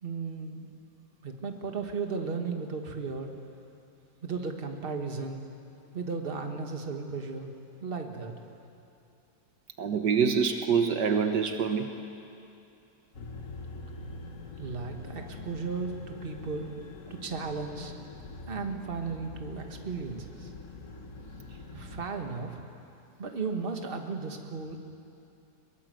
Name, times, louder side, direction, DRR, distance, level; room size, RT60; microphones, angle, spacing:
voice 1, 0.0-0.7 1.2-3.3 4.2-5.5 5.9-7.5 7.8-8.3 14.6-16.7 17.1-17.9 18.5-20.5 21.7-22.6 23.2-24.8, right 4 dB, 30° right, 4 dB, 1.8 m, -35 dB
voice 2, 9.8-11.9, right 6 dB, 70° right, 6 dB, 1.7 m, -26 dB
sound 1, 13.1-22.1, left 3 dB, 45° left, 1.8 m, -44 dB
22.5 x 21.5 x 7.8 m, 2.7 s
omnidirectional pair, 1.9 m